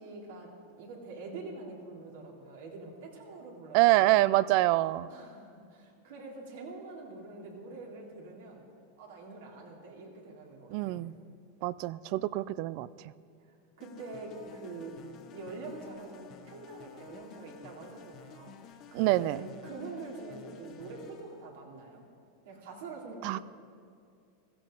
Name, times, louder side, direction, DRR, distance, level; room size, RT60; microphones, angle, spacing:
voice 1, 0.0-4.2 5.1-8.6 9.0-11.0 13.8-15.0 15.3-22.0 22.4-23.4, right 3 dB, 75° right, -2 dB, 3.3 m, -45 dB
voice 2, 3.7-5.1 10.7-11.1 11.6-12.9 18.9-19.4 23.2-23.4, right 17 dB, 55° right, 18 dB, 0.4 m, -25 dB
sound 1, 13.8-21.4, left 7 dB, 45° left, 1.1 m, -51 dB
16.0 x 14.5 x 3.9 m, 2.3 s
hypercardioid pair, 110°, 0 cm